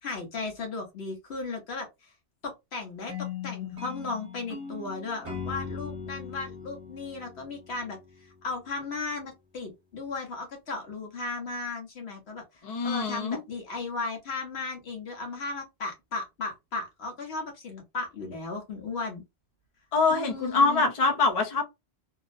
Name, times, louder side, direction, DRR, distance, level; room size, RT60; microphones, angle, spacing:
voice 1, 0.0-2.1 2.4-19.2 20.1-20.8, left 3 dB, 75° left, 1.3 m, -36 dB
sound 1, 3.1-8.2, left 6 dB, 30° right, 1.1 m, -39 dB
voice 2, 12.6-13.4 19.9-21.6, left 3 dB, 40° left, 0.6 m, -24 dB
2.8 x 2.0 x 2.5 m
omnidirectional pair, 1.1 m